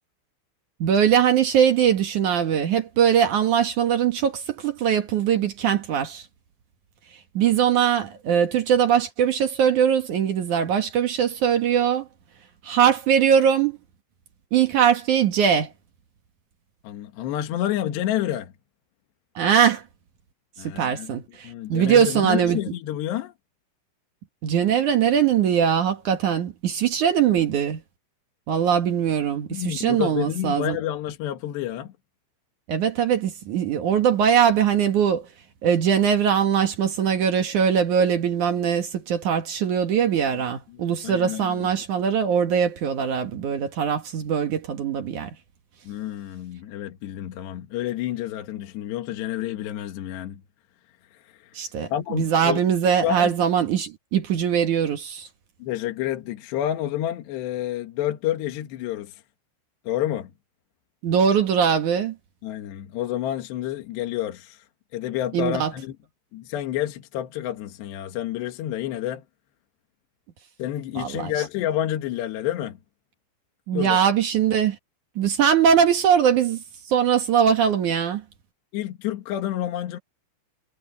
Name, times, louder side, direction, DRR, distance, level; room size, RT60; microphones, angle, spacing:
voice 1, 0.8-6.3 7.3-12.0 12.6-13.8 14.5-15.7 19.4-19.8 20.6-22.6 24.4-27.8 28.5-30.8 32.7-35.3 35.6-45.3 51.5-55.3 61.0-62.1 65.3-65.7 71.0-71.3 73.7-74.8 75.2-76.6 76.9-78.2, right 8 dB, 65° right, 2.0 m, -21 dB
voice 2, 16.8-18.5 20.6-21.1 21.4-23.3 29.5-31.9 40.7-41.7 45.8-50.4 51.1-51.6 51.9-52.6 53.0-53.3 55.6-59.2 59.8-60.3 62.4-64.7 64.9-66.0 66.3-69.2 70.6-72.8 73.7-74.0 78.7-80.0, left 12 dB, 65° left, 3.3 m, -29 dB
omnidirectional pair, 5.9 m